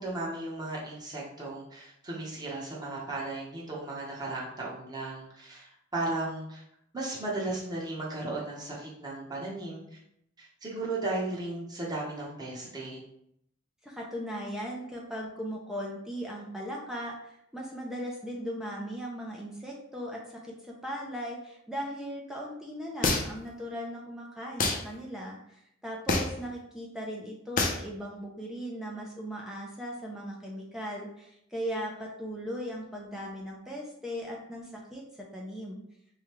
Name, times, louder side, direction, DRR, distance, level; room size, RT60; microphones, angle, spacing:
voice 1, 0.0-6.6 6.9-10.0 10.4-13.0, right 2 dB, 20° right, -5 dB, 1.0 m, -35 dB
voice 2, 13.8-35.0 35.3-35.8, equal, 5° right, -2 dB, 0.5 m, -38 dB
sound 1, 23.0-23.5 24.6-24.8 26.1-26.4 27.6-27.8, left 3 dB, 40° left, 0.6 m, -26 dB
4.9 x 2.3 x 3.0 m, 0.74 s
head